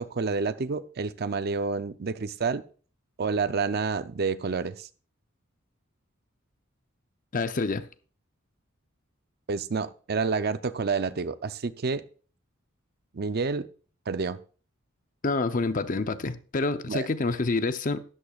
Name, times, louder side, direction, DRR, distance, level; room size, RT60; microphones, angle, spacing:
voice 1, 0.0-2.6 3.2-4.9 9.5-12.0 13.1-13.7 14.1-14.4 16.9-17.1, right 4 dB, 50° right, 0.5 m, -29 dB
voice 2, 7.3-7.8 15.2-18.0, left 3 dB, 40° left, 0.6 m, -27 dB
12.5 x 11.5 x 2.4 m
head